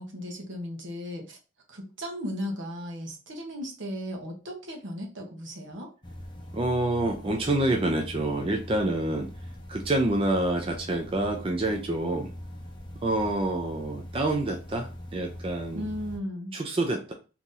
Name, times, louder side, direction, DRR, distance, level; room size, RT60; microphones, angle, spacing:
voice 1, 0.0-1.4 1.7-5.9 15.7-16.5, equal, 75° right, 0 dB, 1.0 m, -36 dB
sound 1, 6.0-16.2, equal, 25° left, 0.7 m, -42 dB
voice 2, 6.5-9.3 9.7-12.3 13.0-15.8 16.5-17.1, right 2 dB, 30° right, 2 dB, 0.4 m, -27 dB
2.9 x 2.6 x 3.7 m, 0.32 s
head